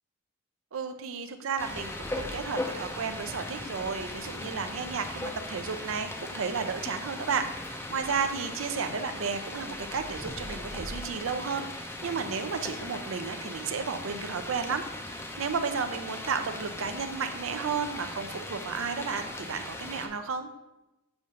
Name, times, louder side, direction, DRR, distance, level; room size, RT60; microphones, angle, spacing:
voice 1, 0.7-14.8 15.1-20.5, right 5 dB, 75° right, 8 dB, 0.5 m, -33 dB
sound 1, 1.6-20.1, left 1 dB, 10° left, 0.5 m, -38 dB
7.1 x 2.5 x 5.2 m, 0.98 s
head